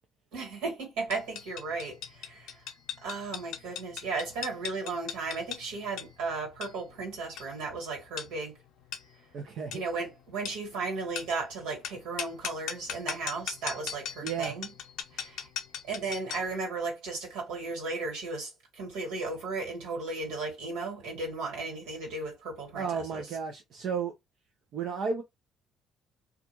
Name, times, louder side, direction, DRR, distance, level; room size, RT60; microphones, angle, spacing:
voice 1, 0.3-2.6 3.0-8.6 9.7-14.7 15.1-15.4 15.8-23.3, right 3 dB, 85° right, 1.6 m, -35 dB
sound 1, 1.1-16.6, left 9 dB, 80° left, 0.6 m, -40 dB
voice 2, 9.3-9.8 14.2-14.6 22.7-24.1 24.7-25.2, right 6 dB, 65° right, 0.6 m, -33 dB
2.4 x 2.4 x 3.0 m
supercardioid pair, 70°, 0 cm